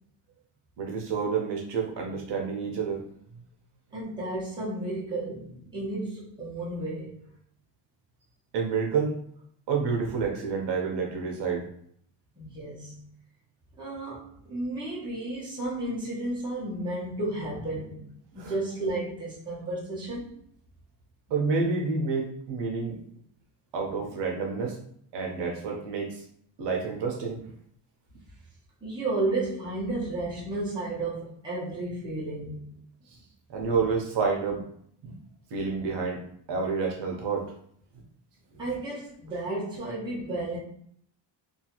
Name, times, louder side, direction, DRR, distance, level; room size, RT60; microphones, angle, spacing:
voice 1, 0.8-3.1 8.5-9.1 9.7-11.7 18.3-18.6 21.3-23.0 23.7-24.8 25.1-26.2 26.6-27.4 33.5-34.6 35.0-35.2 35.5-36.2 36.5-37.5 38.5-38.6, right 5 dB, 65° right, 1 dB, 0.7 m, -29 dB
voice 2, 3.9-7.2 12.4-13.0 13.8-18.1 18.3-20.3 28.8-32.8 38.6-40.6, right 2 dB, 10° right, -7 dB, 0.8 m, -33 dB
2.7 x 2.4 x 2.8 m, 0.65 s
cardioid pair, 180°, 44 cm